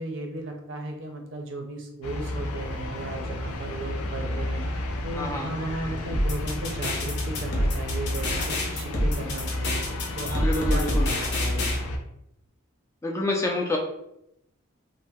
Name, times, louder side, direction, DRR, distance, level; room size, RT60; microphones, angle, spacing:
voice 1, 0.0-4.7 5.0-9.8 10.2-11.8, right 2 dB, 60° right, 3 dB, 0.5 m, -35 dB
sound 1, 2.0-12.0, left 1 dB, 85° left, 0.4 m, -32 dB
voice 2, 5.2-5.5 10.4-11.1 13.0-13.8, left 2 dB, 15° left, 0 dB, 0.3 m, -27 dB
sound 2, 6.1-11.8, left 1 dB, 50° left, 0.7 m, -27 dB
2.7 x 2.0 x 3.4 m, 0.81 s
head